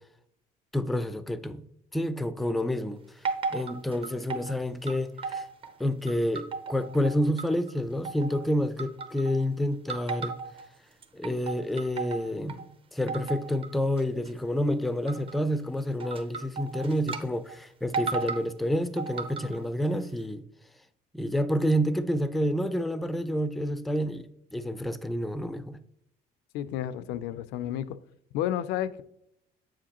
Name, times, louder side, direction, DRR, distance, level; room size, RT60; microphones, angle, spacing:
voice 1, 0.7-1.6 1.9-3.3 3.5-5.5 5.8-10.4 11.1-20.4 21.1-25.8, equal, ahead, 0.3 m, -29 dB
sound 1, 3.2-4.5 4.9-5.7 6.1-7.7 8.0-8.4 8.8-9.5 9.9-10.7 11.0-12.6 13.1-13.7 14.0-14.3 15.1-15.4 16.0-17.2 17.5-17.6 17.9-18.5 19.0-19.6, right 4 dB, 30° right, 0.7 m, -35 dB
voice 2, 26.5-28.0 28.3-29.0, left 11 dB, 90° left, 0.4 m, -31 dB
7.3 x 4.9 x 2.9 m
cardioid pair, 110°, 17 cm